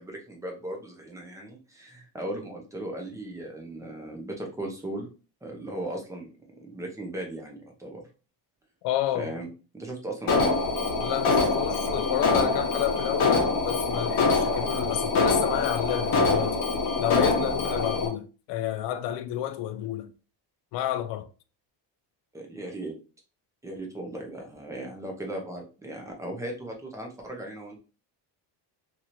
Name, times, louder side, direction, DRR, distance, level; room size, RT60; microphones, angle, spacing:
voice 1, 0.0-5.1 5.4-6.3 6.6-8.1 9.1-9.5 9.7-10.5 22.3-22.9 23.6-27.8, right 1 dB, 5° right, 0.6 m, -37 dB
voice 2, 8.8-9.4 11.0-16.6 17.0-20.1 20.7-21.3, left 12 dB, 75° left, 0.5 m, -30 dB
Alarm, 10.3-18.1, left 3 dB, 55° left, 1.1 m, -24 dB
2.9 x 2.9 x 2.6 m
cardioid pair, 145°, 43 cm